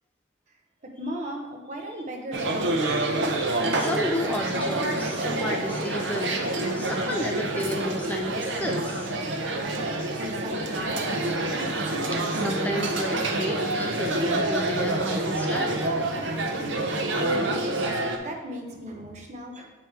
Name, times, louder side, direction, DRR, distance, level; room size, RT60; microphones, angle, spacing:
voice 1, 0.8-2.8 10.2-11.3 16.7-17.6 17.9-19.7, equal, 35° right, 1 dB, 0.8 m, -37 dB
sound 1, 2.3-18.2, right 2 dB, 70° right, 0.6 m, -27 dB
voice 2, 3.3-9.1 12.1-15.8, left 1 dB, 10° left, 1 dB, 0.3 m, -32 dB
7.0 x 3.3 x 4.5 m, 1.2 s
head